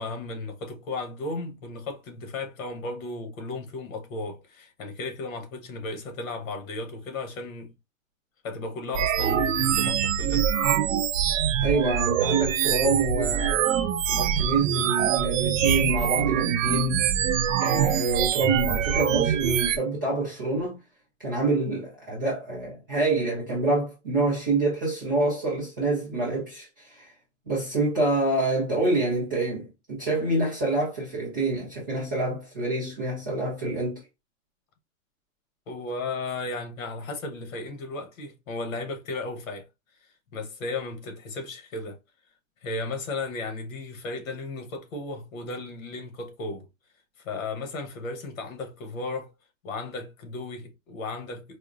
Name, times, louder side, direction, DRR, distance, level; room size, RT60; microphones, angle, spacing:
voice 1, 0.0-7.7 8.4-10.5 35.7-39.7 40.3-42.0 42.6-46.7 47.2-49.3 49.6-51.6, left 3 dB, 70° left, 1.0 m, -35 dB
sound 1, 8.9-19.8, right 9 dB, 70° right, 0.5 m, -24 dB
voice 2, 11.6-13.7 14.1-17.1 17.6-20.8 21.2-27.1 27.5-34.0, right 2 dB, 15° right, 0.4 m, -27 dB
4.6 x 2.1 x 2.4 m
supercardioid pair, 180°, 41 cm